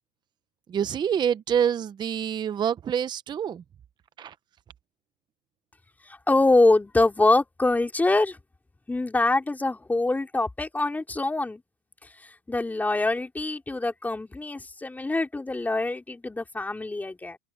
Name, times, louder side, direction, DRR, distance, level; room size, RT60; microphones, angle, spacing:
voice 1, 0.7-3.6 4.2-4.3, right 8 dB, 20° right, 0.7 m, -26 dB
voice 2, 6.0-8.4 8.9-11.6 12.2-17.4, left 2 dB, 10° left, 4.0 m, -24 dB
supercardioid pair, 125°, 19 cm